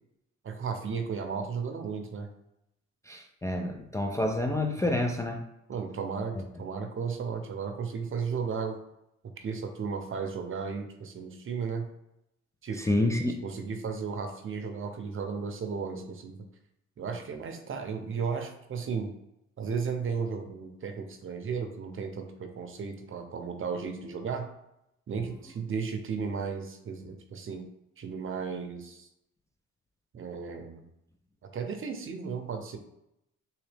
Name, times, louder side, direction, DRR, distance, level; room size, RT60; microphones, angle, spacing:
voice 1, 0.4-2.3 5.7-8.8 9.4-11.9 12.6-12.9 13.4-16.4 17.0-19.1 19.6-24.5 25.1-27.7 28.0-29.1 30.1-30.9 31.4-32.8, right 5 dB, 45° right, 5 dB, 0.7 m, -34 dB
voice 2, 3.0-5.4 6.3-6.4 12.7-13.4, left 1 dB, 10° left, 2 dB, 0.4 m, -28 dB
3.9 x 2.7 x 3.3 m, 0.83 s
cardioid pair, 90°, 30 cm